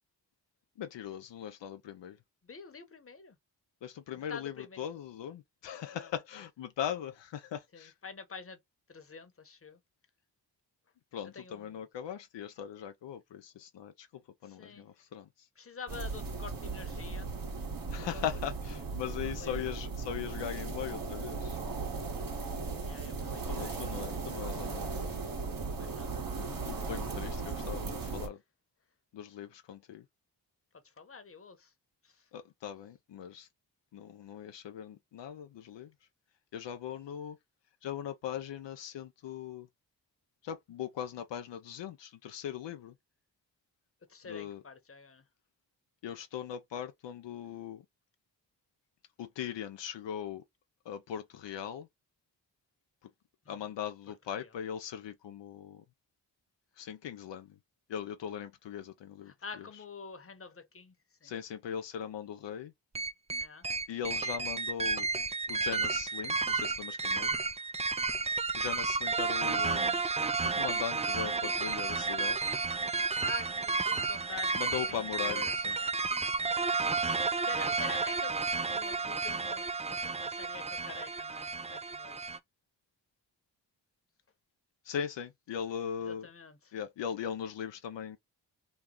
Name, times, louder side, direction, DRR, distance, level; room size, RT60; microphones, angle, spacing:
voice 1, 0.8-2.2 3.8-7.9 11.1-14.1 14.4-15.3 17.9-21.6 23.5-25.1 26.4-28.4 29.1-30.0 32.3-33.5 33.9-35.9 36.5-37.4 37.8-39.7 40.4-42.9 44.3-44.6 46.0-47.8 49.2-50.4 50.9-51.9 53.5-55.8 56.8-57.5 57.9-59.3 61.2-62.7 63.9-65.1 65.5-67.4 68.6-70.0 70.5-72.4 74.5-75.8 84.9-86.3 86.7-88.2, left 9 dB, 80° left, 0.6 m, -39 dB
voice 2, 2.4-3.4 4.3-4.9 5.9-6.1 7.7-8.6 8.9-9.8 11.3-11.8 14.4-14.9 15.6-17.3 19.2-19.7 22.8-23.9 25.8-26.1 26.7-27.0 30.8-31.7 32.0-32.2 44.1-45.2 53.4-53.7 54.4-54.6 59.2-60.9 61.2-61.3 63.4-63.7 73.0-74.5 74.9-75.6 76.4-76.6 77.2-82.3 86.0-86.7, left 5 dB, 30° left, 1.0 m, -47 dB
sound 1, 15.9-28.3, right 4 dB, 50° right, 1.4 m, -37 dB
sound 2, 62.9-82.4, right 4 dB, 15° right, 0.4 m, -32 dB
3.1 x 2.3 x 3.6 m
cardioid pair, 50°, 43 cm